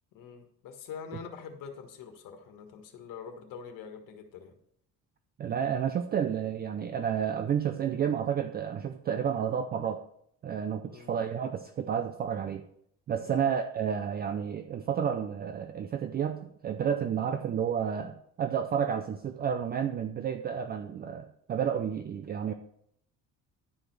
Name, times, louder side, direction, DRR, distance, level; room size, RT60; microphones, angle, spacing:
voice 1, 0.1-4.5 10.8-11.1 13.1-13.5, left 6 dB, 70° left, 5 dB, 1.7 m, -45 dB
voice 2, 5.4-10.0 10.4-12.6 13.1-22.5, right 8 dB, 30° right, 8 dB, 0.4 m, -31 dB
11.0 x 5.0 x 6.0 m, 0.70 s
cardioid pair, 170°, 34 cm